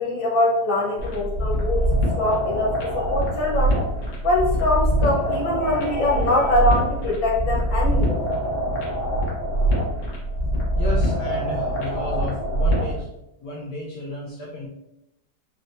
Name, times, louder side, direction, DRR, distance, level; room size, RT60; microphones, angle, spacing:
voice 1, 0.0-1.8 2.2-3.8 4.2-8.2, left 2 dB, 85° left, -3 dB, 1.9 m, -23 dB
sound 1, 1.0-13.0, right 1 dB, 45° left, 1.4 m, -24 dB
voice 2, 10.8-13.1 13.4-14.7, left 1 dB, 65° left, -5 dB, 1.4 m, -32 dB
4.7 x 4.2 x 2.6 m, 0.87 s
omnidirectional pair, 2.0 m